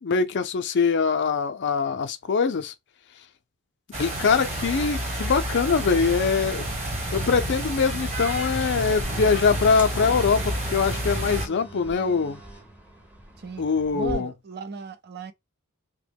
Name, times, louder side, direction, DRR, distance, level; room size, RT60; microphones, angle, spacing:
voice 1, 0.0-2.7 4.0-6.7 7.1-12.4 13.6-14.3, left 5 dB, 55° left, 0.5 m, -23 dB
sound 1, 3.9-11.5, right 1 dB, 30° right, 1.2 m, -29 dB
sound 2, 8.9-14.1, equal, 5° right, 0.7 m, -41 dB
voice 2, 13.9-15.3, right 5 dB, 50° right, 0.5 m, -35 dB
3.0 x 2.2 x 3.4 m
head